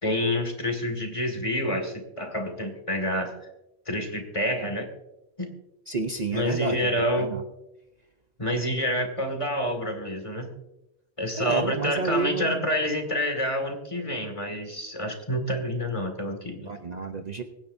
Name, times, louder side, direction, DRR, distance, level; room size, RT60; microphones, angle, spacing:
voice 1, 0.0-3.4 3.9-4.9 5.4-5.5 6.3-7.3 8.4-10.5 11.2-16.7, equal, 30° left, 4 dB, 2.1 m, -28 dB
voice 2, 5.9-6.9 7.2-7.4 11.3-12.7 16.6-17.4, right 4 dB, 40° right, 5 dB, 0.8 m, -30 dB
24.5 x 10.0 x 2.7 m, 0.93 s
omnidirectional pair, 1.2 m